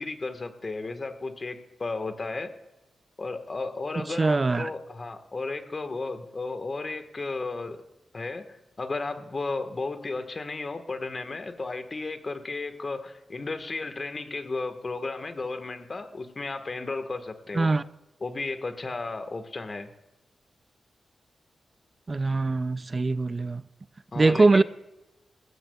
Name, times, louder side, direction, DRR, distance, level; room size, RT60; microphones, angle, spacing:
voice 1, 0.0-2.5 3.2-7.8 8.1-17.7 18.2-19.9 24.1-24.6, left 3 dB, 45° left, 1.4 m, -34 dB
voice 2, 4.0-4.7 17.5-17.8 22.1-23.6 24.2-24.6, right 3 dB, 40° right, 0.4 m, -22 dB
18.5 x 15.0 x 2.3 m
cardioid pair, 50°, 0 cm